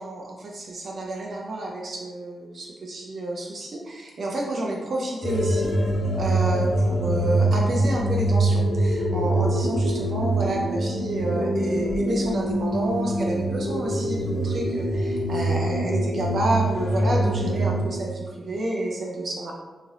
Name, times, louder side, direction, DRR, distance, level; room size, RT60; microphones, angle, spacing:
voice 1, 0.0-5.7 6.1-19.5, right 1 dB, 50° right, -2 dB, 0.4 m, -29 dB
sound 1, 5.2-17.8, right 1 dB, 45° left, 0.8 m, -24 dB
2.7 x 2.4 x 3.2 m, 1.3 s
wide cardioid pair, 150°, 0 cm